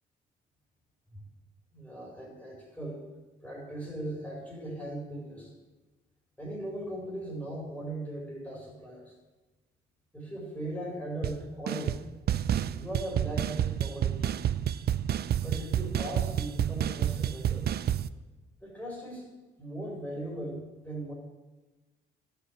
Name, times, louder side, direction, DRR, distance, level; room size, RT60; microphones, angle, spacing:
voice 1, 1.7-3.1 3.4-5.5 6.4-9.1 10.1-12.0 12.7-14.4 15.4-17.7 18.6-19.3 19.6-21.1, right 1 dB, 5° left, -2 dB, 4.6 m, -38 dB
sound 1, 11.2-11.4 11.7-12.0 12.3-18.1, right 10 dB, 55° right, 0.5 m, -29 dB
11.5 x 7.1 x 8.3 m, 1.2 s
cardioid pair, 90°, 20 cm